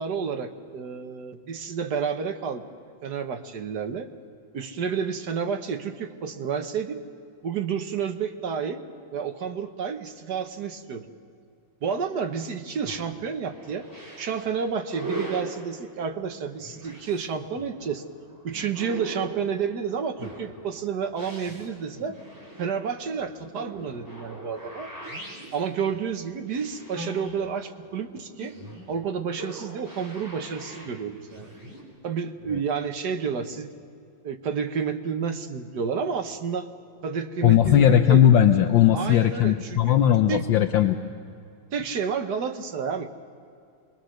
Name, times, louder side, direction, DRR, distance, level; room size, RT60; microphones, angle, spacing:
voice 1, 0.0-2.7 3.0-4.1 4.5-7.0 7.4-8.8 9.1-11.1 11.8-13.9 14.2-18.0 18.4-22.2 22.6-24.9 25.5-28.5 28.9-31.5 32.0-33.7 34.2-36.7 37.0-38.2 38.9-40.0 40.3-40.4 41.7-43.1, right 6 dB, 60° right, 6 dB, 1.6 m, -30 dB
sound 1, 12.8-31.8, right 2 dB, 10° right, 4.3 m, -41 dB
voice 2, 37.4-41.0, left 10 dB, 75° left, 7 dB, 1.4 m, -18 dB
26.0 x 21.5 x 6.4 m, 2.4 s
omnidirectional pair, 2.2 m